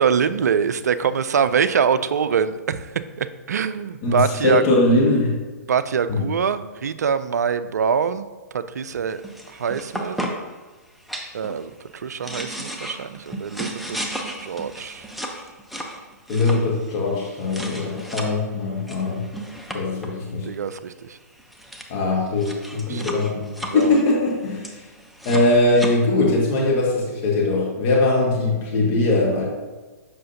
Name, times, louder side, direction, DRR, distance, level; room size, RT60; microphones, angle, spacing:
voice 1, 0.0-4.6 5.7-8.3 8.5-10.2 11.3-15.1 20.4-21.2 22.9-23.2 23.7-24.0, right 7 dB, 70° right, 13 dB, 0.4 m, -24 dB
voice 2, 4.0-5.4 6.1-6.2 16.3-19.2 19.7-20.5 21.9-24.7 25.2-29.4, left 2 dB, 40° left, -3 dB, 1.6 m, -21 dB
sound 1, 9.1-10.5 11.1-11.6 12.0-18.3 18.9-20.1 21.1-21.2 21.4-21.8 22.3-25.9, right 1 dB, ahead, 0.7 m, -34 dB
7.5 x 5.8 x 2.7 m, 1.3 s
figure-of-eight pair, 115°, 9 cm